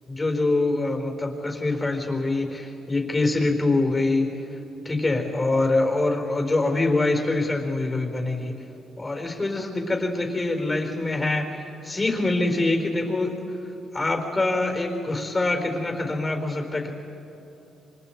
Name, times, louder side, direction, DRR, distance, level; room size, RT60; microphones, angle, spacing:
voice 1, 0.1-4.3 4.8-8.5 9.0-13.3 13.9-16.9, left 2 dB, 25° left, 3 dB, 4.2 m, -24 dB
29.0 x 25.5 x 4.6 m, 3.0 s
cardioid pair, 90°, 0 cm